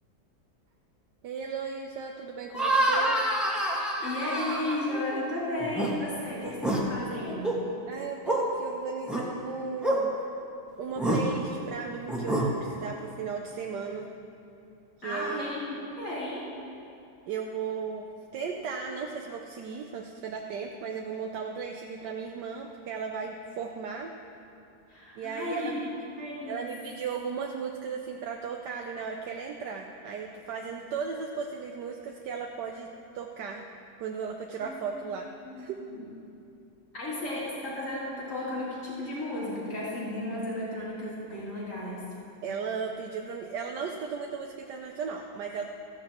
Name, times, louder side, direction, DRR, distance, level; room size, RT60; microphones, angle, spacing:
voice 1, 1.2-3.2 7.9-10.2 10.8-14.1 15.0-15.5 17.3-18.1 18.3-24.1 25.2-25.9 26.5-32.9 33.1-33.6 34.0-35.3 35.6-35.8 42.4-45.6, right 6 dB, 85° right, 1 dB, 1.3 m, -36 dB
sound 1, 2.5-5.2 5.6-5.9 6.4-6.8 7.3-7.6 8.3-8.4 9.1-9.2 9.8-10.0 11.0-11.2 12.1-12.5, right 1 dB, ahead, 1.5 m, -27 dB
voice 2, 4.0-7.7 15.0-16.5 24.9-25.8 26.1-26.7 34.6-35.1 35.4-35.6 35.9-36.1 36.9-42.1, left 1 dB, 50° left, -8 dB, 3.6 m, -34 dB
15.5 x 15.0 x 3.0 m, 2.7 s
omnidirectional pair, 1.8 m